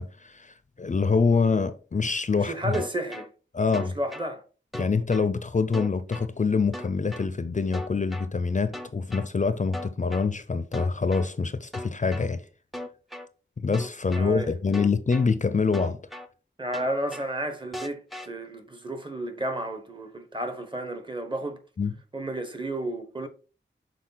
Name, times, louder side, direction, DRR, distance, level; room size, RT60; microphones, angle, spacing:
voice 1, 0.0-2.8 3.5-4.0 4.8-12.4 13.6-16.0 21.8-21.9, left 4 dB, 40° left, 0.5 m, -25 dB
voice 2, 2.4-3.3 3.8-4.4 14.1-14.5 16.6-21.6 22.1-23.3, right 1 dB, 25° right, 1.1 m, -32 dB
sound 1, 2.7-3.3 3.7-4.3 4.7-5.3 5.7-6.3 6.7-7.3 7.7-8.3 8.7-9.3 9.7-10.3 10.7-11.3 11.7-12.3 12.7-13.3 13.7-14.3 14.7-15.3 15.7-16.3 16.7-17.3 17.7-18.3, left 1 dB, ahead, 0.7 m, -37 dB
6.5 x 4.1 x 4.0 m
wide cardioid pair, 95°, 20 cm